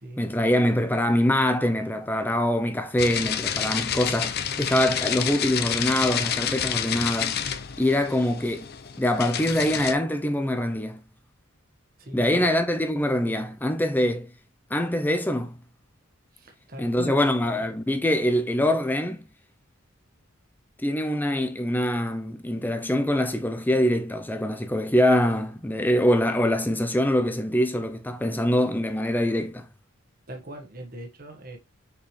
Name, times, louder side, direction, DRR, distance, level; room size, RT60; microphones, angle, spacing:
voice 1, 0.2-7.4 7.8-8.7 9.0-11.0 12.1-14.3 14.7-15.5 16.8-19.2 20.8-29.7, left 1 dB, 10° left, 0.6 m, -24 dB
sound 1, 3.0-9.9, left 8 dB, 45° left, 0.7 m, -29 dB
voice 2, 12.0-12.4 16.3-17.2 30.3-31.6, right 1 dB, 40° right, 1.4 m, -40 dB
6.3 x 5.1 x 3.2 m
head